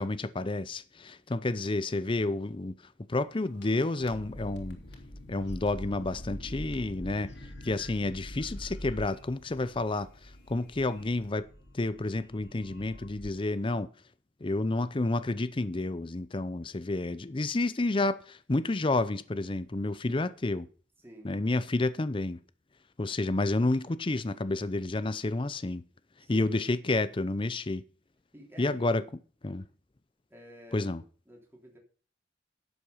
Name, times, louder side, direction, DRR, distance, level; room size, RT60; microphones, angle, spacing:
voice 1, 0.0-2.7 3.1-4.8 5.3-7.3 7.6-11.5 11.7-13.9 14.4-20.7 21.2-22.4 23.0-25.8 26.3-27.8 28.6-29.0 29.4-29.6 30.7-31.0, left 2 dB, 25° left, 0.6 m, -30 dB
sound 1, 3.4-13.3, left 1 dB, 65° left, 2.8 m, -44 dB
voice 2, 21.0-21.3 26.2-26.6 28.3-28.9 30.3-31.0 31.2-31.8, right 1 dB, 10° right, 3.4 m, -50 dB
11.5 x 8.1 x 5.6 m
head